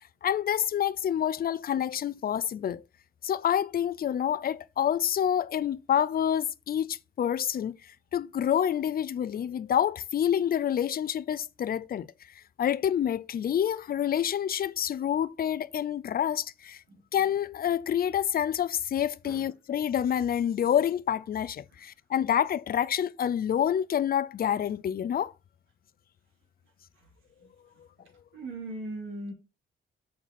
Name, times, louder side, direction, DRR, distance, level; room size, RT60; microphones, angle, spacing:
voice 1, 0.2-2.8 3.2-7.8 8.1-12.1 12.6-16.8 17.1-25.3, left 9 dB, 45° left, 0.5 m, -27 dB
voice 2, 28.0-29.3, right 2 dB, 85° right, 2.8 m, -39 dB
7.3 x 4.3 x 4.2 m
cardioid pair, 80°, 20 cm